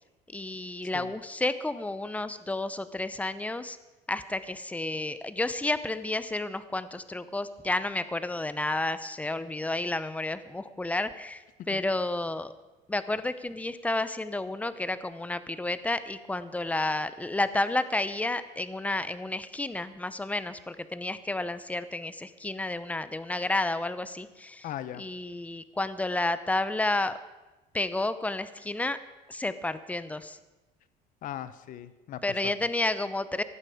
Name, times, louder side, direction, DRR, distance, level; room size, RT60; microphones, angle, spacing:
voice 1, 0.3-3.8 4.1-12.5 12.9-24.7 25.0-27.2 27.7-29.0 29.3-30.4 32.2-33.4, left 2 dB, 10° left, 13 dB, 0.7 m, -31 dB
voice 2, 24.6-25.0 31.2-32.5, left 11 dB, 55° left, 14 dB, 0.9 m, -39 dB
15.5 x 11.5 x 5.0 m, 1.1 s
cardioid pair, 125°, 17 cm